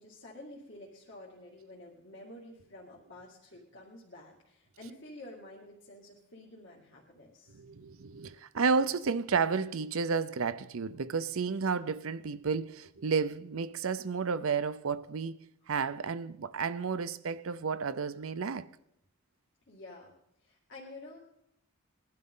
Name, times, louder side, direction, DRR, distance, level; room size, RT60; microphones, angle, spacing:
voice 1, 0.0-7.6 19.7-20.1 20.4-21.2, left 1 dB, 55° left, 2.3 m, -50 dB
voice 2, 7.5-15.4 15.7-18.7, right 5 dB, 70° right, 0.6 m, -31 dB
20.5 x 12.0 x 3.8 m
head